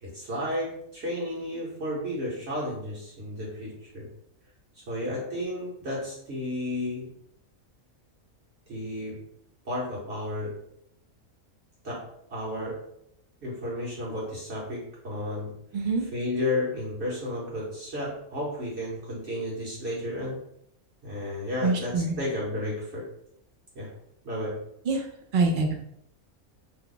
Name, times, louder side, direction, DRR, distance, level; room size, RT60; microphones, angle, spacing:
voice 1, 0.0-4.1 4.7-7.1 8.7-9.2 9.6-10.6 11.8-12.8 13.4-15.5 16.0-20.4 21.0-23.1 23.7-23.9 24.2-24.6, left 1 dB, 50° right, -6 dB, 1.2 m, -32 dB
voice 2, 15.7-16.1 21.6-22.2 24.9-25.1 25.3-25.7, right 3 dB, 75° right, 2 dB, 0.4 m, -25 dB
2.8 x 2.2 x 3.8 m, 0.74 s
omnidirectional pair, 1.5 m